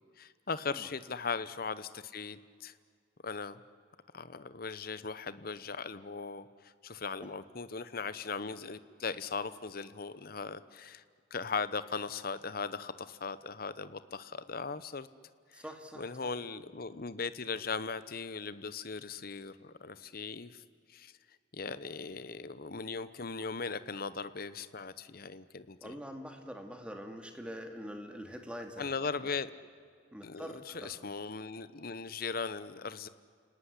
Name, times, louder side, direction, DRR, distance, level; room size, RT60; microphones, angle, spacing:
voice 1, 0.0-2.7 3.2-3.6 4.1-11.0 11.3-15.1 15.5-15.6 16.0-20.6 20.9-21.1 21.5-26.0 28.8-29.5 30.2-33.1, left 4 dB, 50° left, 14 dB, 0.9 m, -39 dB
voice 2, 15.5-16.3 25.8-28.9 30.1-31.0, equal, 5° right, 4 dB, 2.3 m, -44 dB
30.0 x 18.5 x 10.0 m, 2.1 s
head